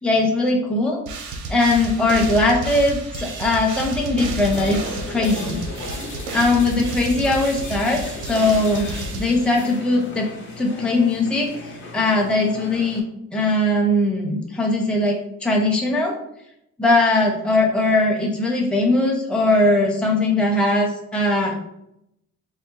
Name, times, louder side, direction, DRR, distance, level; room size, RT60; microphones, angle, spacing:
voice 1, 0.0-1.0 1.5-4.8 5.1-5.6 6.3-10.3 10.6-13.0 13.3-16.2 16.8-21.5, left 2 dB, 5° left, 0 dB, 0.6 m, -20 dB
sound 1, 1.1-9.9, right 2 dB, 80° right, 0.6 m, -31 dB
sound 2, 4.4-13.0, left 2 dB, 40° left, 0.7 m, -36 dB
3.5 x 2.0 x 3.0 m, 0.80 s
cardioid pair, 90°, 30 cm